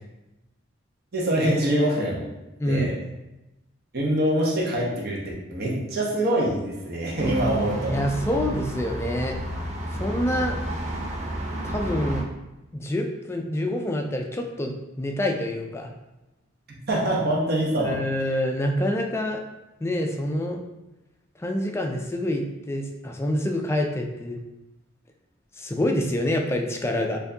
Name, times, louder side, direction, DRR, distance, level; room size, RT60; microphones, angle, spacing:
voice 1, 1.1-2.2 2.7-2.9 3.9-5.2 5.5-7.9 16.7-18.0, right 1 dB, 55° right, -3 dB, 0.9 m, -24 dB
voice 2, 2.6-2.9 7.9-9.4 10.0-10.6 11.6-12.2 12.7-15.9 17.8-19.4 19.8-20.6 21.4-24.4 25.6-27.2, left 1 dB, 15° left, 2 dB, 0.3 m, -26 dB
sound 1, 7.2-12.2, right 1 dB, 35° right, 0.5 m, -30 dB
4.4 x 2.6 x 2.7 m, 0.99 s
head